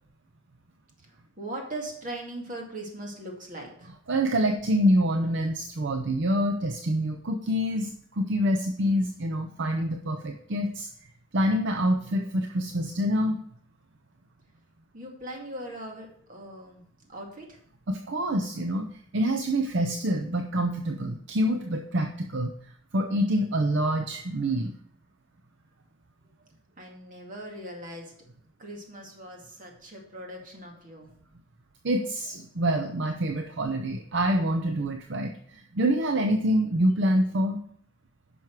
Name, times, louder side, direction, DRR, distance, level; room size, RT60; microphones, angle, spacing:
voice 1, 1.0-3.9 14.9-16.8 17.1-17.6 26.8-28.1 28.6-31.1, right 1 dB, 40° right, 0 dB, 2.3 m, -40 dB
voice 2, 4.1-10.9 11.3-13.4 17.9-22.5 22.9-24.7 31.8-37.6, equal, 65° right, 4 dB, 0.7 m, -26 dB
10.5 x 6.1 x 4.7 m, 0.62 s
head